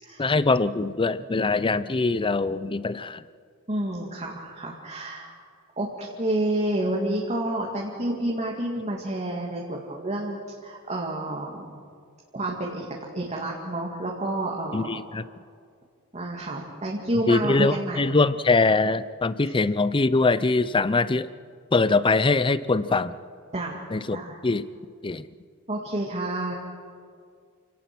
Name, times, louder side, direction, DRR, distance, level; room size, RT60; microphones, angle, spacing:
voice 1, 0.2-3.2 14.7-15.2 17.3-21.3 21.7-23.1 23.9-24.7 25.0-25.2, left 3 dB, 25° left, 16 dB, 0.5 m, -23 dB
voice 2, 3.7-5.3 5.8-11.8 12.3-12.9 13.1-14.9 16.1-18.2 23.5-23.8 24.1-24.4 25.7-26.6, right 1 dB, 30° right, -2 dB, 2.1 m, -29 dB
28.5 x 17.5 x 6.1 m, 2.2 s
head